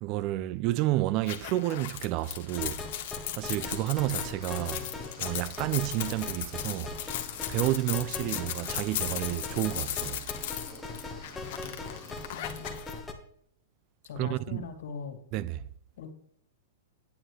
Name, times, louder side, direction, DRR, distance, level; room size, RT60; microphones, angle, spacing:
voice 1, 0.0-2.8 3.3-4.8 5.2-6.9 7.5-10.3 14.2-14.7 15.3-15.6, right 16 dB, 40° right, 0.4 m, -30 dB
sound 1, 1.2-12.9, left 12 dB, 55° left, 1.2 m, -37 dB
sound 2, 2.6-13.1, left 3 dB, 10° left, 1.1 m, -41 dB
sound 3, 3.4-12.4, right 1 dB, 20° right, 2.2 m, -52 dB
voice 2, 12.3-12.8 14.0-15.2 16.0-16.1, left 6 dB, 75° left, 1.9 m, -41 dB
9.4 x 8.9 x 3.2 m
hypercardioid pair, 135°, 0 cm